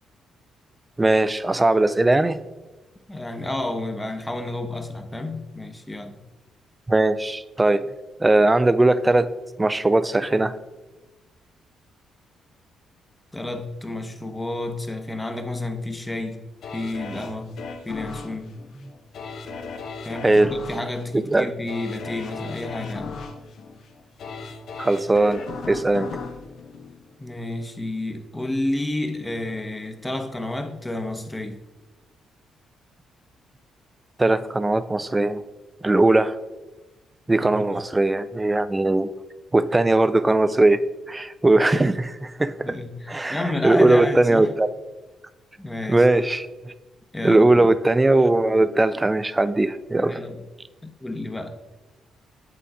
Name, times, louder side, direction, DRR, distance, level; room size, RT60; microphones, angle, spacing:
voice 1, 1.0-2.4 6.9-7.9 8.2-9.3 9.6-10.5 20.2-20.5 21.1-21.5 24.8-26.1 34.2-35.4 35.8-36.3 37.3-39.1 39.5-42.7 43.1-44.7 45.9-46.7 47.2-50.2, right 2 dB, 15° right, 14 dB, 0.3 m, -19 dB
voice 2, 3.1-6.1 13.3-16.4 16.7-17.6 17.8-18.6 20.0-23.2 27.2-31.6 37.4-37.6 42.6-44.5 45.6-46.1 47.1-47.7 50.0-50.4 50.8-51.6, left 2 dB, 15° left, 7 dB, 0.9 m, -30 dB
sound 1, 16.6-27.6 28.0-28.1, left 4 dB, 65° left, 0.8 m, -37 dB
8.5 x 3.8 x 4.8 m, 1.2 s
cardioid pair, 90°, 0 cm